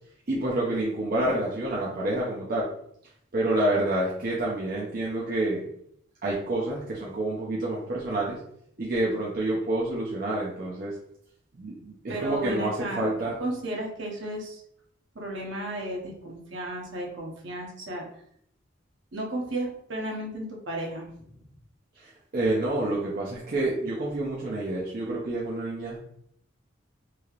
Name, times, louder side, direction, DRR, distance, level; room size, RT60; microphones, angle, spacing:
voice 1, 0.3-2.7 3.3-5.6 6.2-8.4 8.8-10.9 11.6-13.4 22.0-26.0, right 1 dB, 45° right, -5 dB, 0.6 m, -28 dB
voice 2, 12.1-14.6 15.1-18.0 19.1-21.3, right 1 dB, 70° right, -1 dB, 0.9 m, -34 dB
3.1 x 2.8 x 2.4 m, 0.69 s
head